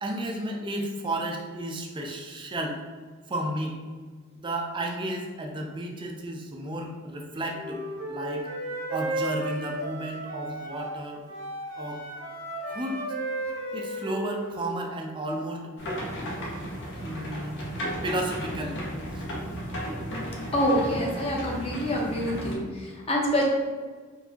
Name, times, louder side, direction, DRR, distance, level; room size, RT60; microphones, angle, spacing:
voice 1, 0.0-2.8 3.3-3.8 4.4-8.5 8.9-11.2 11.8-12.0 12.7-13.0 13.7-15.7 17.0-17.6 18.0-18.8, right 1 dB, 20° right, 1 dB, 0.4 m, -32 dB
Wind instrument woodwind instrument, 7.5-11.0 11.3-14.8, right 2 dB, 65° right, 0.8 m, -34 dB
sound 1, 15.8-22.5, equal, 60° left, 0.8 m, -34 dB
voice 2, 20.5-23.4, equal, 30° left, -3 dB, 0.7 m, -26 dB
4.1 x 2.6 x 2.8 m, 1.5 s
head